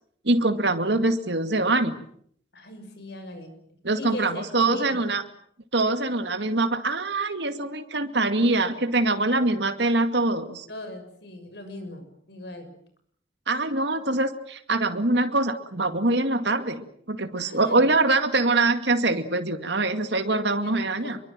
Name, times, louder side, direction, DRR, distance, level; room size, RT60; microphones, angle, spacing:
voice 1, 0.2-2.0 3.8-5.2 5.7-10.7 13.5-21.2, right 2 dB, 65° right, 8 dB, 2.3 m, -24 dB
voice 2, 2.5-5.0 10.7-12.7 17.4-17.9 20.6-21.1, left 1 dB, 60° left, 8 dB, 6.4 m, -39 dB
26.5 x 23.5 x 7.6 m, 0.64 s
head